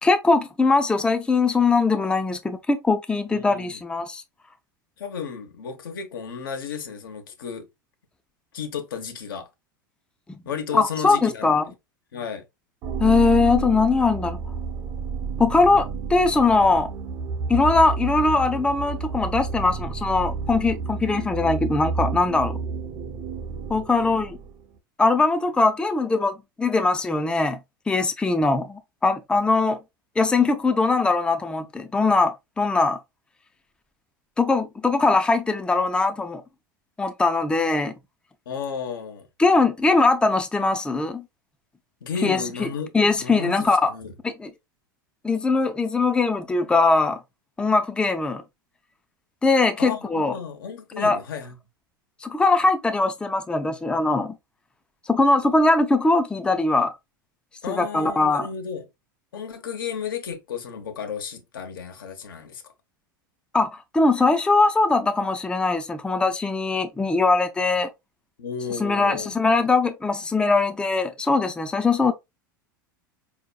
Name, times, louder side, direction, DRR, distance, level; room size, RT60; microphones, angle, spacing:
voice 1, 0.0-4.2 10.3-10.4 10.7-11.6 13.0-14.4 15.4-16.9 17.5-22.6 23.7-24.4 25.0-27.6 27.9-29.8 30.2-33.0 34.4-36.4 37.0-37.9 39.4-41.2 42.2-42.7 42.9-43.9 44.2-44.5 45.2-47.2 47.6-48.4 49.4-50.3 51.0-51.2 52.2-54.4 55.1-56.9 57.7-58.5 63.5-67.9 68.7-72.1, left 3 dB, 10° left, 0.4 m, -21 dB
voice 2, 3.3-3.8 5.0-7.7 8.5-9.5 10.4-11.6 12.1-12.4 23.9-24.2 38.5-39.3 42.0-44.1 49.8-51.5 57.6-58.8 59.3-62.7 68.4-69.3, left 6 dB, 75° left, 0.8 m, -33 dB
sound 1, 12.8-24.7, right 5 dB, 45° right, 0.7 m, -30 dB
4.3 x 2.8 x 2.2 m
hypercardioid pair, 90°, 11 cm